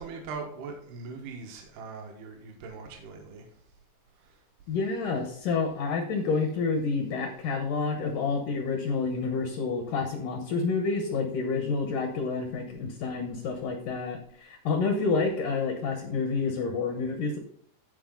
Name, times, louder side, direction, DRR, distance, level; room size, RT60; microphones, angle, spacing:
voice 1, 0.0-3.5, right 4 dB, 70° right, 1 dB, 3.3 m, -40 dB
voice 2, 4.7-17.4, left 4 dB, 70° left, 4 dB, 2.0 m, -29 dB
15.0 x 4.9 x 3.9 m, 0.63 s
omnidirectional pair, 5.0 m